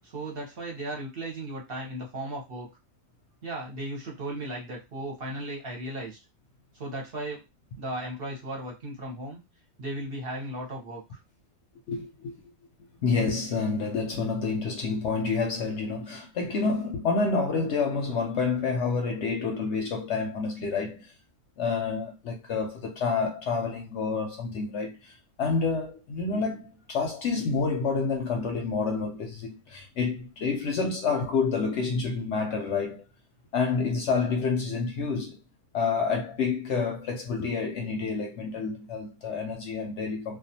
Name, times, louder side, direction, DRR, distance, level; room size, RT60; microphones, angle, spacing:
voice 1, 0.0-2.7 3.4-6.2 6.7-7.4 7.8-9.4 9.8-11.2, right 1 dB, 50° right, 0.9 m, -36 dB
voice 2, 11.9-12.3 13.0-21.1 21.6-33.0 33.5-35.4 35.7-40.4, left 4 dB, 65° left, 0.8 m, -28 dB
2.3 x 2.3 x 2.7 m
omnidirectional pair, 1.5 m